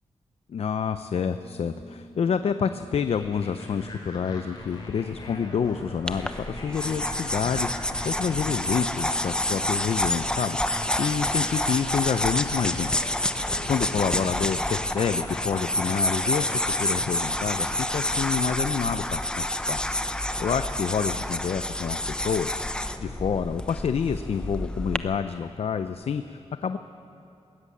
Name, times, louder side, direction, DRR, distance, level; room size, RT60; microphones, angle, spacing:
voice 1, 0.5-13.1 13.7-16.5 16.8-19.8 20.4-22.6 23.0-26.8, left 7 dB, 65° left, 10 dB, 0.6 m, -28 dB
Organ, 1.2-11.5, right 1 dB, 80° right, 2.7 m, -49 dB
sound 1, 3.1-17.8, left 2 dB, 40° left, 5.7 m, -42 dB
sound 2, 6.1-25.0, left 1 dB, 10° left, 0.7 m, -28 dB
20.5 x 17.0 x 8.5 m, 2.6 s
wide cardioid pair, 135°, 11 cm